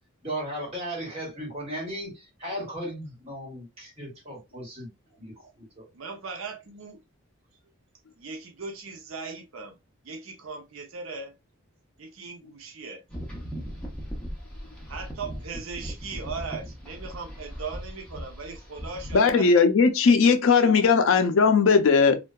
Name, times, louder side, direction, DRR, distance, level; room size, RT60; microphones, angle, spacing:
voice 1, 0.2-4.9 5.2-5.8, equal, 25° right, 1.2 m, -36 dB
voice 2, 5.9-7.0 8.2-9.8 10.0-11.3 12.0-13.0 14.9-19.7 20.1-20.8 21.4-21.8, right 4 dB, 65° right, 0.5 m, -38 dB
sound 1, 13.1-19.2, equal, 5° left, 0.6 m, -38 dB
voice 3, 19.1-22.2, left 5 dB, 65° left, 0.4 m, -18 dB
2.6 x 2.2 x 2.2 m
head